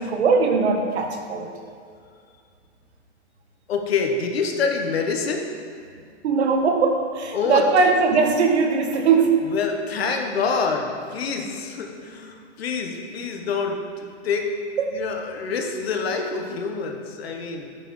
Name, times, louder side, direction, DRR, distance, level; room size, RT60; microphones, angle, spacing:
voice 1, 0.0-1.5 6.2-9.4 14.8-15.0, right 4 dB, 65° right, 4 dB, 1.2 m, -20 dB
voice 2, 3.7-5.5 7.3-7.9 9.4-14.5 14.9-17.8, left 5 dB, 60° left, 3 dB, 1.1 m, -26 dB
9.5 x 8.9 x 3.2 m, 2.2 s
hypercardioid pair, 175°, 35 cm